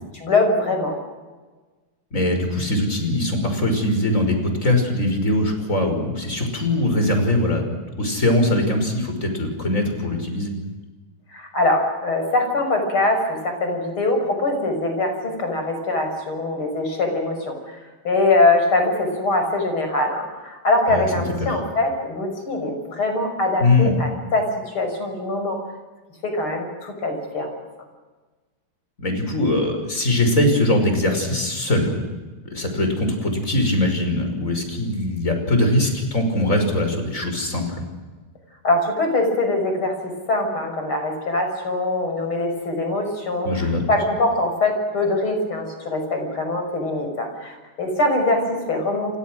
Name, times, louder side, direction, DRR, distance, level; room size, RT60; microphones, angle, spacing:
voice 1, 0.2-1.0 11.3-25.6 26.2-27.5 38.6-49.2, left 2 dB, 85° left, 4 dB, 6.9 m, -23 dB
voice 2, 2.1-10.5 20.9-21.1 21.4-21.5 23.6-23.9 29.0-31.9 32.4-37.8 43.4-43.8, left 1 dB, 35° left, 5 dB, 6.0 m, -21 dB
30.0 x 25.0 x 6.4 m, 1.3 s
omnidirectional pair, 2.3 m